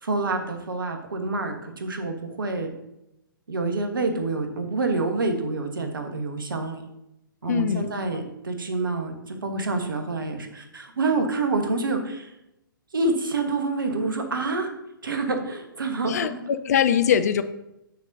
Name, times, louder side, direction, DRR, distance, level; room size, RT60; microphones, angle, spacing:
voice 1, 0.0-2.7 3.5-6.8 7.4-12.3 12.9-14.7 15.0-16.4, right 3 dB, 70° right, 5 dB, 1.2 m, -27 dB
voice 2, 7.4-8.2 16.1-17.4, left 8 dB, 45° left, 12 dB, 0.4 m, -23 dB
8.0 x 6.4 x 2.7 m, 0.87 s
figure-of-eight pair, 120°, 12 cm